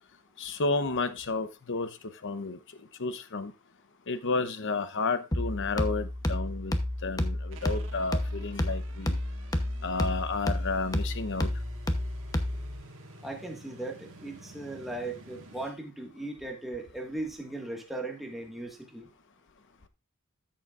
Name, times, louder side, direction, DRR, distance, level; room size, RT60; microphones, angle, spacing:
voice 1, 0.4-1.9 2.2-2.6 3.0-3.5 4.1-6.7 7.0-9.2 9.8-11.5, left 3 dB, 55° left, 11 dB, 0.9 m, -31 dB
sound 1, 5.3-12.8, left 1 dB, 15° left, 0.8 m, -31 dB
sound 2, 7.5-15.7, right 2 dB, 60° right, 1.7 m, -51 dB
voice 2, 13.2-19.1, right 2 dB, ahead, 1 dB, 1.7 m, -38 dB
13.0 x 7.0 x 2.5 m, 0.26 s
head